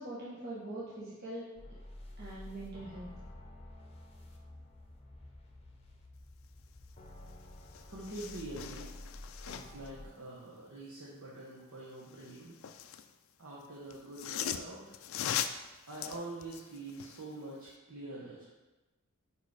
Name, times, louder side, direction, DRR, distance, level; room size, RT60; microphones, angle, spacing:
voice 1, 0.0-1.4 2.2-3.1, right 1 dB, 45° right, -8 dB, 1.0 m, -42 dB
sound 1, 1.6-10.1, left 1 dB, 25° left, 0.7 m, -50 dB
sound 2, 7.3-7.4 7.6-9.9 12.0-13.1 13.9-17.3 17.7-17.8, left 9 dB, 60° left, 0.3 m, -40 dB
voice 2, 7.9-8.9 9.4-12.5 13.4-15.0 15.9-18.5, right 2 dB, 65° right, -6 dB, 1.1 m, -45 dB
5.0 x 4.7 x 4.8 m, 1.1 s
head